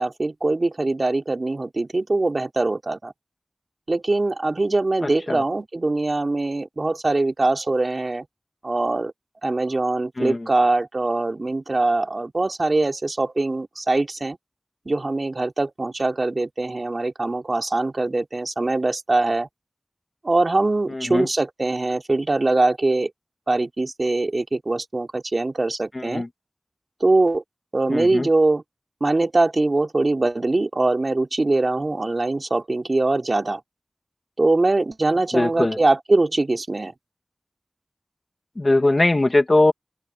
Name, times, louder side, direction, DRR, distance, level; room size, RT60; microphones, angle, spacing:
voice 1, 0.0-3.1 3.9-8.2 8.6-9.1 9.4-14.4 14.8-19.5 20.2-23.1 23.5-26.2 27.0-27.4 27.7-28.6 29.0-33.6 34.4-36.9, right 2 dB, 70° right, 3.4 m, -22 dB
voice 2, 5.0-5.4 10.2-10.5 20.9-21.3 26.1-26.3 27.9-28.3 35.3-35.8 38.6-39.7, left 2 dB, 55° left, 2.3 m, -20 dB
open air
wide cardioid pair, 40°, 0 cm